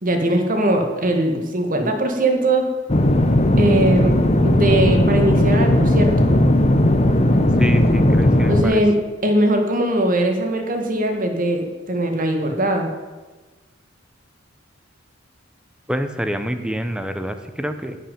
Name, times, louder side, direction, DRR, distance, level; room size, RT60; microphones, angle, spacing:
voice 1, 0.0-2.7 3.6-6.3 8.5-8.9 9.2-12.9, right 1 dB, 45° right, 4 dB, 1.9 m, -20 dB
sound 1, 2.9-8.6, left 1 dB, 30° left, 0.9 m, -16 dB
voice 2, 7.6-8.8 15.9-18.0, equal, 5° right, 8 dB, 0.9 m, -26 dB
11.0 x 7.5 x 9.3 m, 1.3 s
head